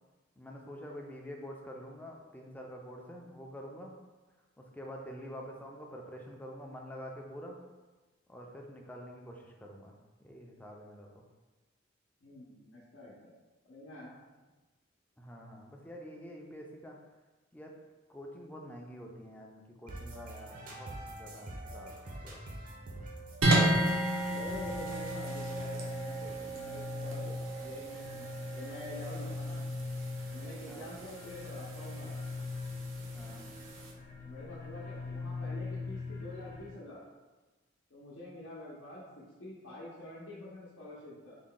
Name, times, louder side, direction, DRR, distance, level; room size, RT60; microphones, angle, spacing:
voice 1, 0.4-3.9 4.6-7.6 8.3-10.0 10.2-11.2 15.2-17.0 17.5-17.7 18.1-22.4 30.6-30.9 33.1-33.5, equal, 10° left, 0 dB, 0.4 m, -47 dB
voice 2, 12.2-13.3 13.6-14.2 24.3-27.3 27.6-29.7 30.3-32.3 34.2-37.0 37.9-41.4, left 1 dB, 70° left, -7 dB, 0.7 m, -47 dB
sound 1, 19.9-27.7, right 1 dB, 45° right, 0.6 m, -47 dB
sound 2, 23.4-33.9, right 1 dB, 80° right, 0.7 m, -34 dB
sound 3, 24.2-36.7, left 4 dB, 40° left, 0.7 m, -41 dB
3.5 x 2.2 x 3.8 m, 1.2 s
head